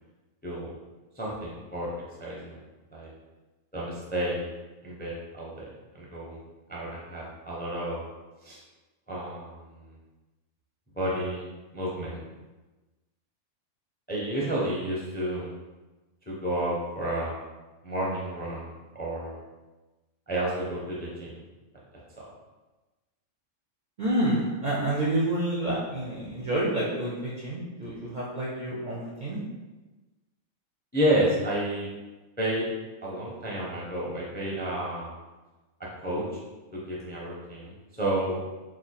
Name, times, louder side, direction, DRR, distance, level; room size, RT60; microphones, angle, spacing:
voice 1, 1.2-1.9 2.2-2.6 2.9-3.1 3.7-4.5 4.8-5.6 5.9-6.4 6.7-8.0 8.4-8.6 9.1-9.9 11.0-11.5 11.7-12.2 14.1-15.5 16.3-17.4 17.8-19.4 20.3-21.3 30.9-31.9 32.4-32.6 33.0-35.1 35.8-36.2 36.7-38.4, right 1 dB, 15° left, -5 dB, 0.4 m, -30 dB
voice 2, 24.0-29.4, right 1 dB, 55° right, -5 dB, 0.5 m, -28 dB
3.0 x 2.3 x 4.0 m, 1.2 s
omnidirectional pair, 1.3 m